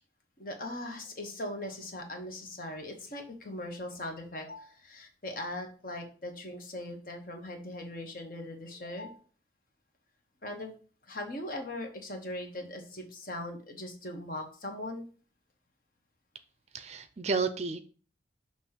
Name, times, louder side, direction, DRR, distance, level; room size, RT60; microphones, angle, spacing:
voice 1, 0.4-9.2 10.4-10.7 11.1-15.0, left 1 dB, 50° left, 3 dB, 1.3 m, -40 dB
voice 2, 16.7-17.8, right 4 dB, 40° right, 11 dB, 0.5 m, -31 dB
6.3 x 3.0 x 5.7 m, 0.39 s
head